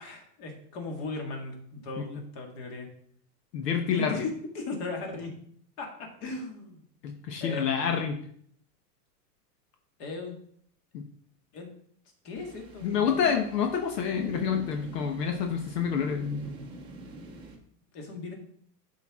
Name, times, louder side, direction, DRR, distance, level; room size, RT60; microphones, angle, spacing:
voice 1, 0.0-2.9 3.8-5.3 5.8-5.9 6.2-6.8 7.4-8.0 10.0-10.4 11.5-11.7 12.2-13.4 17.9-18.3, left 3 dB, 40° left, 2 dB, 2.0 m, -37 dB
voice 2, 3.5-4.2 7.0-8.2 10.9-11.0 12.8-16.4, left 7 dB, 70° left, 4 dB, 1.2 m, -28 dB
sound 1, 12.4-17.6, right 2 dB, 10° right, 0.8 m, -44 dB
11.5 x 4.7 x 3.6 m, 0.64 s
supercardioid pair, 170°, 50 cm